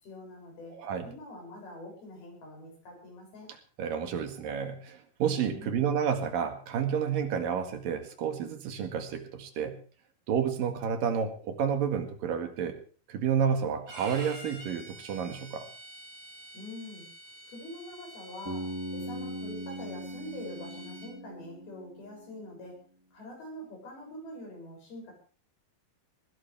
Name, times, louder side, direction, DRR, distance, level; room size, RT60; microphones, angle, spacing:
voice 1, 0.0-0.8 1.0-3.5 5.5-6.0 16.5-17.1 17.5-22.8 23.1-25.1, left 1 dB, 90° left, 0 dB, 9.1 m, -45 dB
voice 2, 0.7-1.1 3.8-9.8 10.3-12.8 13.1-15.7, right 7 dB, 70° right, 6 dB, 3.4 m, -30 dB
Bowed string instrument, 13.9-21.1, right 1 dB, 30° right, 4.4 m, -48 dB
Bass guitar, 18.5-22.5, right 1 dB, 5° right, 1.9 m, -40 dB
20.0 x 17.0 x 3.5 m, 0.41 s
omnidirectional pair, 4.2 m